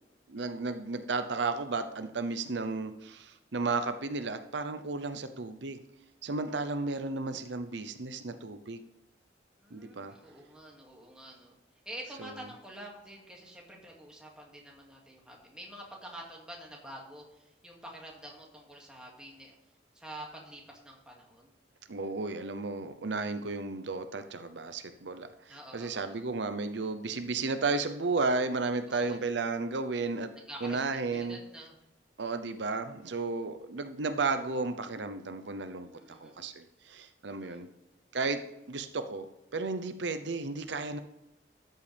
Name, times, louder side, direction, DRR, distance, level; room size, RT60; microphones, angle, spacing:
voice 1, 0.3-5.8 6.2-8.8 9.7-10.1 12.2-12.3 21.9-30.3 30.6-31.4 32.2-37.7 38.1-39.3 39.5-41.0, right 3 dB, 75° right, 9 dB, 0.7 m, -33 dB
voice 2, 9.6-11.5 11.9-19.5 19.9-21.5 25.5-26.2 28.9-29.2 30.3-30.8 31.1-31.7 35.9-36.5 37.3-37.6, right 1 dB, 5° right, -2 dB, 2.3 m, -48 dB
13.0 x 8.1 x 3.5 m, 0.92 s
head